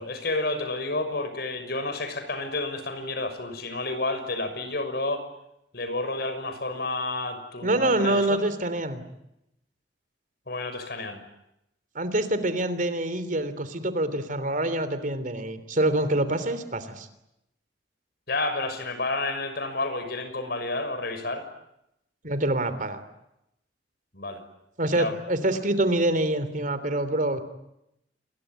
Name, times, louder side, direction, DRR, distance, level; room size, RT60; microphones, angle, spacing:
voice 1, 0.0-5.2 5.7-8.4 10.5-11.2 18.3-21.4 24.1-24.4 24.9-25.1, left 2 dB, 60° left, 9 dB, 6.3 m, -30 dB
voice 2, 7.6-9.0 11.9-17.1 22.2-23.0 24.8-27.4, right 1 dB, 50° right, 12 dB, 3.2 m, -26 dB
28.5 x 22.0 x 9.1 m, 0.84 s
head